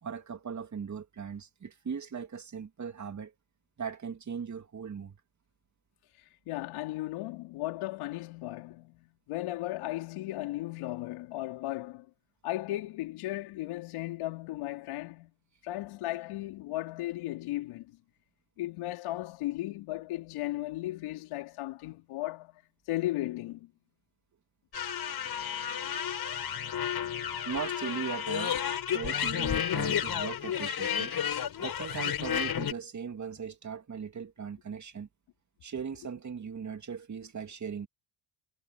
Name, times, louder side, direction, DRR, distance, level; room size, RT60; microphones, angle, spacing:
voice 1, 0.0-3.3 3.8-5.2 27.4-28.6 28.9-31.1 31.6-35.1 35.6-37.9, right 6 dB, 35° right, 2.7 m, -38 dB
voice 2, 6.5-12.1 12.4-15.3 15.6-17.9 18.6-22.6 22.9-23.7, left 16 dB, 80° left, 3.7 m, -36 dB
sound 1, 24.7-32.7, left 9 dB, 50° left, 4.8 m, -32 dB
cardioid pair, 95°, 49 cm